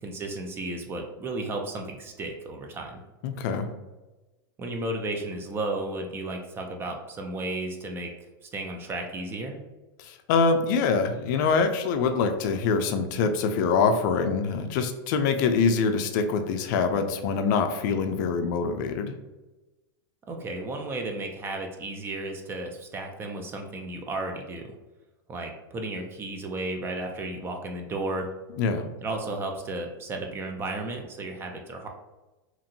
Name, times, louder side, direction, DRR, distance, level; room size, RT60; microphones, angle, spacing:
voice 1, 0.0-3.0 4.6-8.1 8.4-9.6 20.3-24.7 25.3-28.3 29.0-31.9, right 2 dB, 20° right, 3 dB, 0.3 m, -33 dB
voice 2, 3.2-3.7 10.0-19.1 28.6-28.9, left 5 dB, 55° left, 7 dB, 0.4 m, -24 dB
2.9 x 2.5 x 2.6 m, 1.1 s
supercardioid pair, 140°, 12 cm